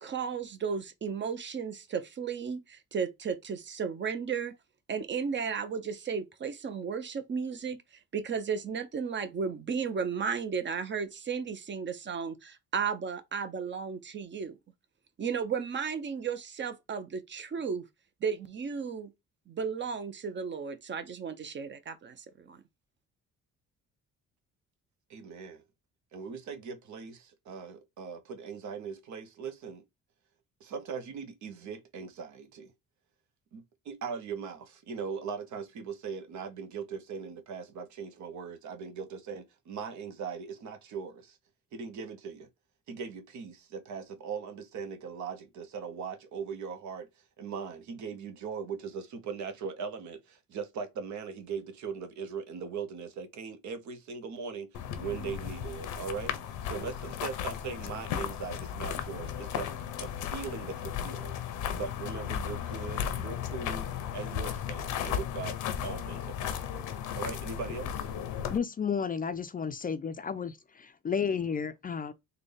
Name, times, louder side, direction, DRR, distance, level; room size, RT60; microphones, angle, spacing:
voice 1, 0.0-4.5 4.9-7.8 8.1-14.6 15.2-17.8 18.2-19.1 19.5-22.6, right 6 dB, 40° right, 0.7 m, -34 dB
voice 2, 25.1-25.6 26.1-29.8 30.6-32.7 33.5-41.4 41.7-42.5 42.9-47.1 47.4-61.3 61.7-63.9 64.1-65.5 65.8-66.8 67.1-68.1, right 5 dB, 70° right, 0.8 m, -40 dB
sound 1, 54.7-68.6, left 9 dB, 90° left, 0.7 m, -35 dB
voice 3, 68.5-72.1, left 6 dB, 30° left, 0.4 m, -32 dB
3.9 x 2.2 x 3.3 m
cardioid pair, 90°, 30 cm